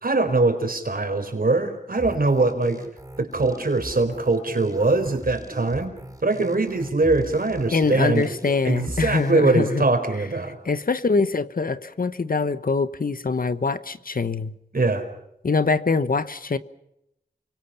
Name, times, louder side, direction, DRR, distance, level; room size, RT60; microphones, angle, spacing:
voice 1, 0.0-2.8 3.2-5.9 6.2-8.3 8.6-10.6 14.7-15.0, right 3 dB, 60° right, 7 dB, 4.4 m, -22 dB
sound 1, 1.9-9.3, right 1 dB, 20° right, 5.5 m, -39 dB
voice 2, 7.7-9.8 10.6-14.5 15.4-16.6, left 4 dB, 55° left, 14 dB, 1.0 m, -23 dB
29.0 x 24.5 x 5.8 m, 0.84 s
wide cardioid pair, 60°, 17 cm